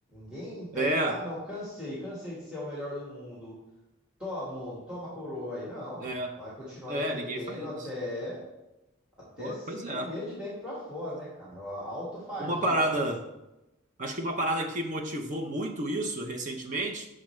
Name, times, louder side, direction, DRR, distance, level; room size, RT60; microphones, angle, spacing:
voice 1, 0.1-3.5 4.2-8.4 9.2-12.9, left 1 dB, 5° right, -8 dB, 1.5 m, -38 dB
voice 2, 0.7-1.2 6.0-6.3 6.9-7.7 9.4-10.1 12.4-13.2 14.0-17.1, right 1 dB, 40° right, 4 dB, 0.6 m, -30 dB
6.3 x 4.9 x 3.1 m, 0.95 s
head